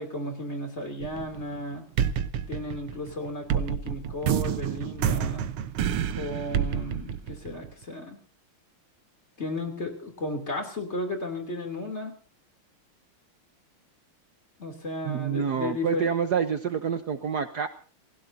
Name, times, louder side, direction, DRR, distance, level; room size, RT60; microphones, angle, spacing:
voice 1, 0.0-1.8 2.5-5.5 6.1-8.2 9.4-12.1 14.6-16.1, left 1 dB, 30° left, 4 dB, 3.3 m, -34 dB
sound 1, 1.0-1.6 2.0-7.8, right 9 dB, 90° right, 1.9 m, -28 dB
voice 2, 15.0-17.7, right 7 dB, 55° right, 8 dB, 1.4 m, -27 dB
29.5 x 16.0 x 2.8 m, 0.40 s
omnidirectional pair, 2.3 m